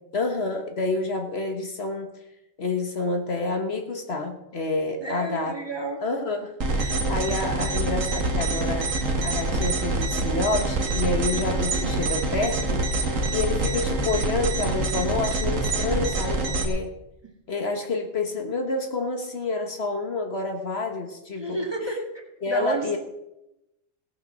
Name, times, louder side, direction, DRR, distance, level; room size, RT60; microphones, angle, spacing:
voice 1, 0.1-2.1 2.6-5.5 6.0-8.9 9.2-12.9 13.3-16.9 17.5-21.6 22.4-23.0, left 3 dB, 55° left, 4 dB, 1.5 m, -28 dB
voice 2, 5.0-6.0 21.3-23.0, right 1 dB, 20° right, 1 dB, 2.1 m, -31 dB
sound 1, 6.6-16.7, right 2 dB, 80° right, 1.8 m, -26 dB
17.5 x 6.6 x 6.2 m, 0.91 s
omnidirectional pair, 1.3 m